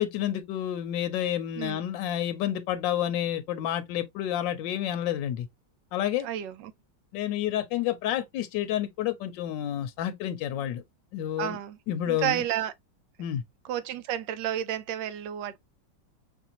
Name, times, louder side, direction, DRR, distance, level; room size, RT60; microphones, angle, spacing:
voice 1, 0.0-5.5 5.9-6.3 7.1-10.8 11.1-11.6 11.9-12.4 13.2-13.4, left 11 dB, 80° left, 1.3 m, -29 dB
voice 2, 6.2-6.7 11.4-11.8 12.1-12.7 13.6-15.6, right 11 dB, 75° right, 1.3 m, -31 dB
5.5 x 2.6 x 2.8 m
omnidirectional pair, 2.0 m